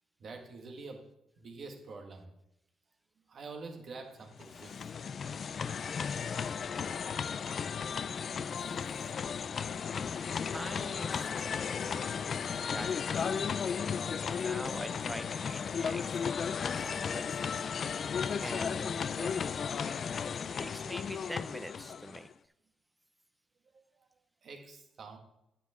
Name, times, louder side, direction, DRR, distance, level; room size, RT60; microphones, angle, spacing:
voice 1, 0.2-1.1 1.4-2.3 3.3-4.9 8.8-9.1 24.0-24.1 24.4-25.2, right 3 dB, 55° right, 3 dB, 1.8 m, -47 dB
sound 1, 4.3-22.3, left 6 dB, 50° left, 0.3 m, -35 dB
voice 2, 10.5-12.3 12.7-12.9 13.2-13.5 13.9-16.2 16.7-17.5 18.4-19.5 20.6-22.3, right 1 dB, 5° right, 12 dB, 0.6 m, -45 dB
9.4 x 8.5 x 3.7 m, 0.84 s
cardioid pair, 90°, 0 cm